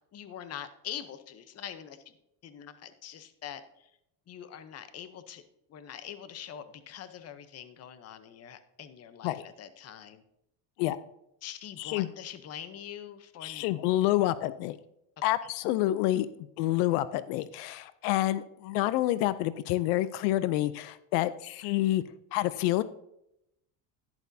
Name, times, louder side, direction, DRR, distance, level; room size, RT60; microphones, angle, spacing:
voice 1, 0.1-2.0 2.4-3.9 4.3-5.4 5.7-10.2 11.4-13.6, left 9 dB, 35° left, 11 dB, 0.8 m, -44 dB
voice 2, 11.8-12.1 13.4-14.8 15.2-16.3 16.6-22.0 22.3-22.8, left 15 dB, 80° left, 15 dB, 0.6 m, -28 dB
11.5 x 10.5 x 2.7 m, 0.80 s
cardioid pair, 135°, 45 cm